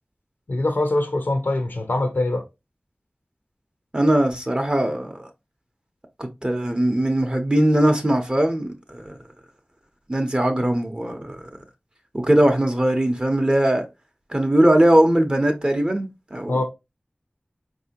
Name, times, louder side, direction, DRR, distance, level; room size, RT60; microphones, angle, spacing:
voice 1, 0.5-2.4 16.5-16.6, left 2 dB, 90° left, 0.6 m, -23 dB
voice 2, 3.9-5.3 6.2-9.2 10.1-11.4 12.1-13.8 14.3-16.5, right 1 dB, 30° right, 0.7 m, -20 dB
4.3 x 2.7 x 2.7 m
wide cardioid pair, 60°, 3 cm